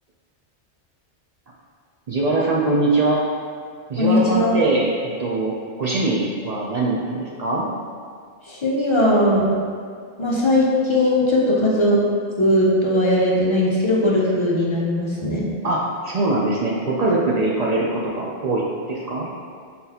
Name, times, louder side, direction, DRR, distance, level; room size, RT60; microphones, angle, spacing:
voice 1, 2.1-3.2 3.9-7.7 15.6-19.3, right 2 dB, 65° right, -4 dB, 0.4 m, -22 dB
voice 2, 4.0-4.6 8.5-9.6 10.2-12.0 12.4-15.5, left 1 dB, 40° left, -4 dB, 0.4 m, -19 dB
4.0 x 3.9 x 2.8 m, 2.2 s
omnidirectional pair, 1.2 m